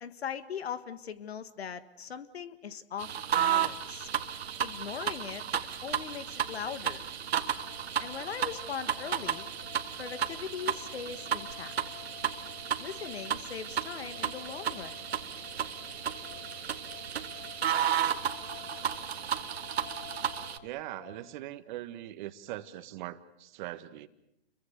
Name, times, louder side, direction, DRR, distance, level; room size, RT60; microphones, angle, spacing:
voice 1, 0.0-4.1 4.6-5.4 5.8-7.0 8.0-9.5 10.0-11.7 12.8-15.0, left 8 dB, 75° left, 13 dB, 1.8 m, -40 dB
sound 1, 3.0-20.6, right 9 dB, 75° right, 1.7 m, -33 dB
sound 2, 7.6-21.3, left 11 dB, 35° left, 2.8 m, -51 dB
voice 2, 20.6-24.1, right 14 dB, 45° right, 12 dB, 1.6 m, -41 dB
29.5 x 23.0 x 6.8 m, 0.84 s
hypercardioid pair, 120°, 32 cm